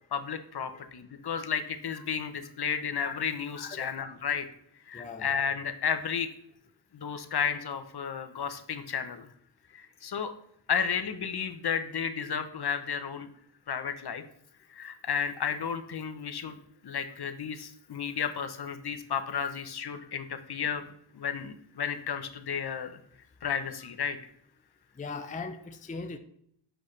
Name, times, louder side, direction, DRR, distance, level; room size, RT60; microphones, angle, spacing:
voice 1, 0.1-4.5 4.9-6.3 6.9-9.3 9.7-10.3 10.7-13.3 13.7-14.2 14.7-16.6 16.8-20.8 21.1-23.0 23.4-24.2, left 7 dB, 60° left, 9 dB, 0.8 m, -32 dB
voice 2, 4.9-5.3 25.0-26.2, left 4 dB, 20° left, 7 dB, 0.5 m, -39 dB
7.9 x 6.5 x 3.2 m, 0.71 s
wide cardioid pair, 105°, 45 cm